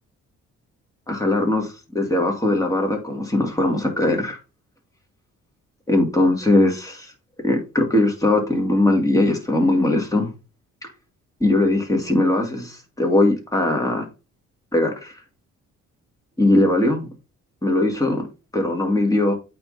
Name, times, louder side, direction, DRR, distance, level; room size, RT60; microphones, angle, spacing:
voice 1, 1.1-4.4 5.9-7.1 7.4-10.3 10.8-10.9 11.4-14.0 14.7-15.2 16.4-17.1 17.6-18.2 18.5-19.3, left 1 dB, 10° left, 2.2 m, -20 dB
8.6 x 3.7 x 4.1 m
cardioid pair, 90°, 30 cm